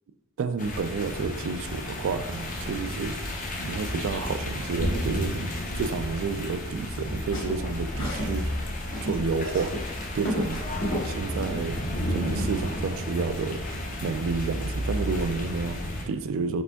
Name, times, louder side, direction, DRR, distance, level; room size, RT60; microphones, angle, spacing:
voice 1, 0.4-3.2 3.6-8.5 9.0-9.8 10.1-10.6 11.0-13.6 14.0-16.6, right 4 dB, 70° right, 11 dB, 0.3 m, -30 dB
sound 1, 0.6-16.0, equal, 40° left, 0.6 m, -32 dB
sound 2, 6.9-8.4 8.6-11.1, equal, 65° left, 1.2 m, -33 dB
5.0 x 4.3 x 2.3 m, 1.1 s
head